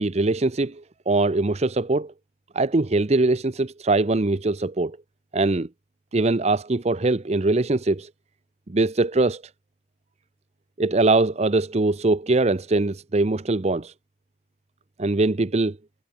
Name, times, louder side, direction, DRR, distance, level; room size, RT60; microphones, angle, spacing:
voice 1, 0.0-2.1 2.5-5.0 5.3-5.7 6.1-8.1 8.7-9.4 10.8-13.9 15.0-15.8, right 2 dB, 35° right, 0.7 m, -22 dB
head